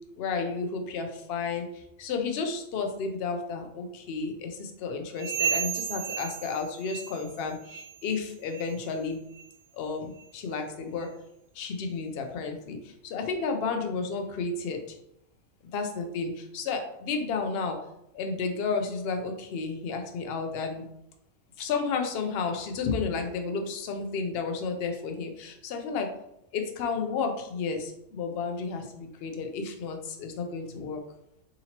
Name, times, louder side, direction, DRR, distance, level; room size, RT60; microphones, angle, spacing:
voice 1, 0.2-9.2 9.7-11.1 11.5-12.8 13.0-15.0 15.7-17.8 18.1-20.8 21.6-26.1 26.5-31.0, left 4 dB, 70° left, 4 dB, 0.6 m, -32 dB
sound 1, 5.2-7.4 7.6-8.0 8.5-8.7 9.3-9.5 10.2-10.3 11.0-11.1, right 8 dB, 80° right, 1.0 m, -33 dB
3.8 x 2.8 x 2.8 m, 0.79 s
omnidirectional pair, 1.5 m